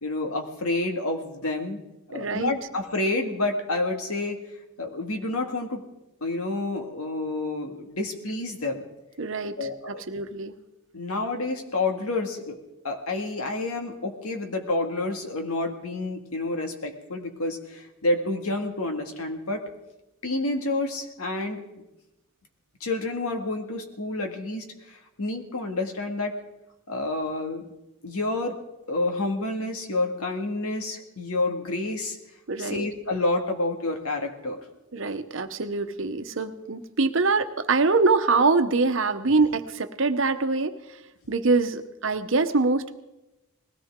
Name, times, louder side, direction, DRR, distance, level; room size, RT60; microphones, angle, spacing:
voice 1, 0.0-1.8 2.1-4.4 4.8-5.8 6.2-8.8 9.6-10.0 10.9-12.6 12.8-19.6 20.2-21.6 22.8-26.3 26.9-27.7 28.0-28.6 28.9-32.2 32.6-34.6, left 2 dB, 90° left, 4 dB, 2.0 m, -29 dB
voice 2, 2.1-2.5 9.2-9.6 9.9-10.5 32.5-32.8 34.9-41.0 41.3-42.9, right 3 dB, 60° right, 8 dB, 0.9 m, -24 dB
20.5 x 17.0 x 3.7 m, 0.97 s
head